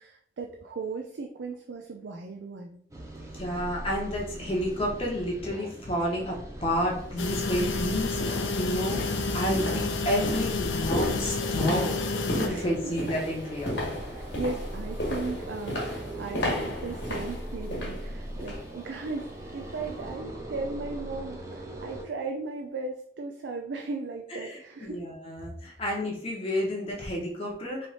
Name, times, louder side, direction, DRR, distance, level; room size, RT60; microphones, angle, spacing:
voice 1, 0.0-2.8 12.1-12.7 14.0-25.0 25.7-25.8, right 3 dB, 70° right, 3 dB, 0.4 m, -37 dB
sound 1, 2.9-22.0, right 1 dB, 15° right, 0.7 m, -40 dB
voice 2, 3.3-12.0 12.2-13.8 24.4-27.9, equal, 30° left, -2 dB, 0.8 m, -30 dB
sound 2, 6.7-6.9 7.4-18.7 19.1-19.3 19.7-19.8, left 1 dB, 65° left, 1.3 m, -35 dB
sound 3, 7.2-12.5, left 3 dB, 80° left, 0.6 m, -30 dB
3.2 x 3.0 x 4.1 m, 0.62 s
head